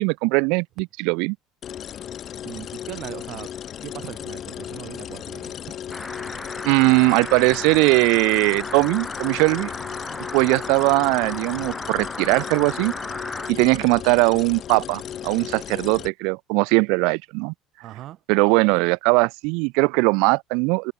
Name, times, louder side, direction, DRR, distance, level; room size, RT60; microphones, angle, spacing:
voice 1, 0.0-1.4 6.6-9.7 10.3-12.9 13.5-17.5 18.3-20.9, right 31 dB, 80° right, 0.5 m, -20 dB
sound 1, 1.6-16.1, left 10 dB, 35° left, 0.7 m, -36 dB
voice 2, 2.4-3.5 3.8-5.8 17.8-18.2 18.7-18.8, right 14 dB, 45° right, 5.2 m, -39 dB
sound 2, 5.9-13.5, left 2 dB, 5° left, 4.2 m, -35 dB
cardioid pair, 165°, 0 cm